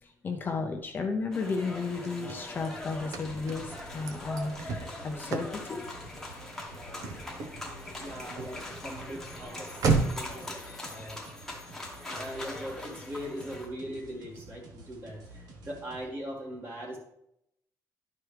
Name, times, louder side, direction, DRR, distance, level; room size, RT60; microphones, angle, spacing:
voice 1, 0.0-5.8, left 4 dB, 30° left, 3 dB, 0.6 m, -34 dB
sound 1, 1.3-13.7, left 2 dB, 5° left, 1.1 m, -42 dB
Car / Slam, 1.7-10.4, right 4 dB, 55° right, 0.9 m, -35 dB
sound 2, 2.5-16.0, right 2 dB, 85° right, 1.2 m, -50 dB
voice 2, 8.0-11.2 12.0-17.0, equal, 35° right, -2 dB, 2.1 m, -40 dB
11.5 x 4.7 x 3.3 m, 0.78 s
cardioid pair, 165°, 7 cm